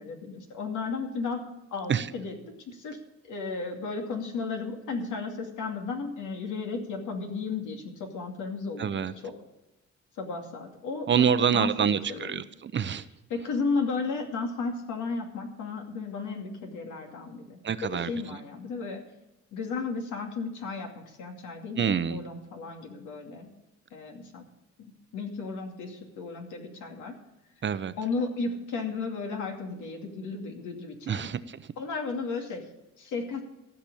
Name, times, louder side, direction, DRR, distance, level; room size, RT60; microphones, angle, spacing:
voice 1, 0.0-1.4 1.7-2.3 2.7-3.0 3.2-9.3 10.2-11.7 12.1-12.4 13.3-17.6 17.9-19.0 19.5-23.5 23.9-24.4 24.8-27.1 28.0-31.3 31.8-32.6 33.0-33.4, left 4 dB, 80° left, 2 dB, 2.5 m, -34 dB
voice 2, 8.8-9.1 11.1-13.0 17.6-18.1 21.8-22.2 27.6-27.9 31.1-31.6, right 7 dB, 40° right, 13 dB, 0.8 m, -26 dB
15.0 x 6.0 x 8.5 m, 0.98 s
cardioid pair, 90°, 30 cm